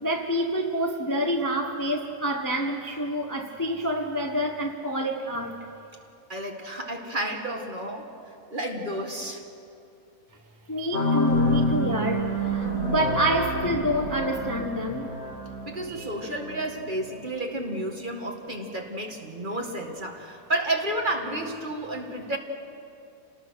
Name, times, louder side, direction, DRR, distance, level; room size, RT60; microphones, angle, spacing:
voice 1, 0.0-5.6 10.7-15.1 15.9-16.1, equal, 15° left, 3 dB, 1.0 m, -28 dB
voice 2, 6.3-8.2 8.5-9.4 15.6-22.4, right 1 dB, 30° right, 2 dB, 2.0 m, -31 dB
sound 1, 10.9-17.2, equal, 60° left, 4.2 m, -28 dB
27.5 x 19.5 x 6.4 m, 2.6 s
omnidirectional pair, 1.7 m